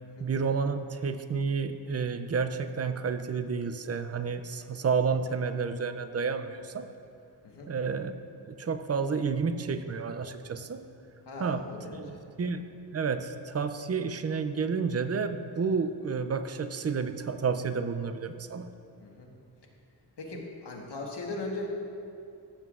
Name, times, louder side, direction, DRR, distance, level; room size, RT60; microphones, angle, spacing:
voice 1, 0.2-6.9 7.7-8.1 8.5-10.8 11.4-11.6 12.0-12.7 12.9-18.7, right 5 dB, 40° right, 10 dB, 0.4 m, -30 dB
voice 2, 11.2-12.2 19.0-19.3 20.2-21.7, left 2 dB, 75° left, -1 dB, 1.5 m, -39 dB
15.0 x 7.6 x 2.5 m, 2.5 s
wide cardioid pair, 125°, 42 cm